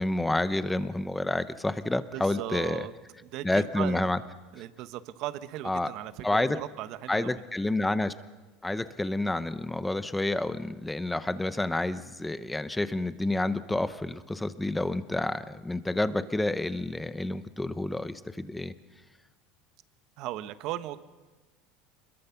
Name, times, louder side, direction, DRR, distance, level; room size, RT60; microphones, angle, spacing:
voice 1, 0.0-2.9 3.4-4.2 5.6-5.9 6.2-6.6 7.1-8.1 8.6-18.7, left 2 dB, 5° left, 12 dB, 0.8 m, -29 dB
voice 2, 2.1-2.9 3.2-4.2 4.5-7.4 20.2-21.0, right 14 dB, 50° right, 13 dB, 1.0 m, -37 dB
27.0 x 21.5 x 5.9 m, 1.3 s
supercardioid pair, 150°, 0 cm